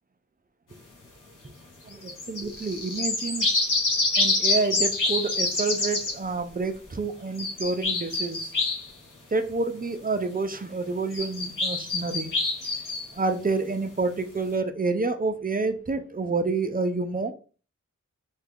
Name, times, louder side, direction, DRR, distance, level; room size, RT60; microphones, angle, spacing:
voice 1, 1.8-3.5 4.2-8.5 9.3-12.3 13.1-17.3, right 3 dB, 30° right, 0.5 m, -28 dB
sound 1, 2.1-6.2 7.4-8.9 11.1-13.1, left 3 dB, 90° left, 1.0 m, -26 dB
3.2 x 2.3 x 3.5 m
cardioid pair, 45°, 31 cm